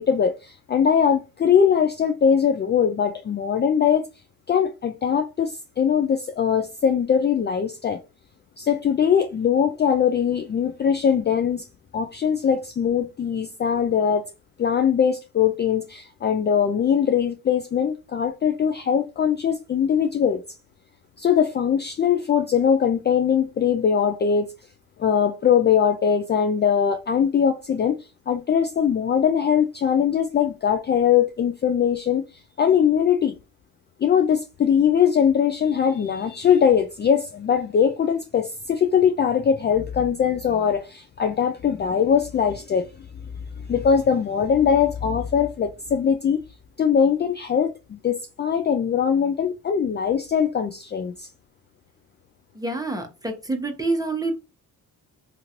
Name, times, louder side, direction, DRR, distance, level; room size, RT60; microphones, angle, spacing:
voice 1, 0.0-4.0 4.5-8.0 8.6-11.7 11.9-14.3 14.6-20.4 21.2-24.5 25.0-28.0 28.3-32.2 32.6-33.3 34.0-42.9 43.7-46.4 46.8-51.3, left 7 dB, 30° left, 0.4 m, -21 dB
voice 2, 52.5-54.4, right 2 dB, 10° right, 1.0 m, -27 dB
2.9 x 2.5 x 2.9 m
supercardioid pair, 65°, 36 cm